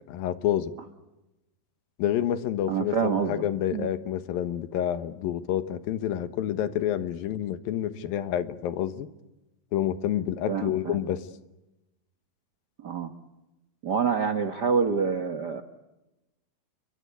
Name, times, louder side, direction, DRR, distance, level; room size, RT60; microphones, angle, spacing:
voice 1, 0.1-0.7 2.0-9.1 9.7-11.3, left 11 dB, 80° left, 11 dB, 3.0 m, -28 dB
voice 2, 2.7-3.3 3.7-3.9 10.5-11.0 12.8-13.1 13.8-15.6, right 6 dB, 85° right, 8 dB, 0.9 m, -26 dB
29.5 x 23.0 x 8.3 m, 0.98 s
omnidirectional pair, 4.1 m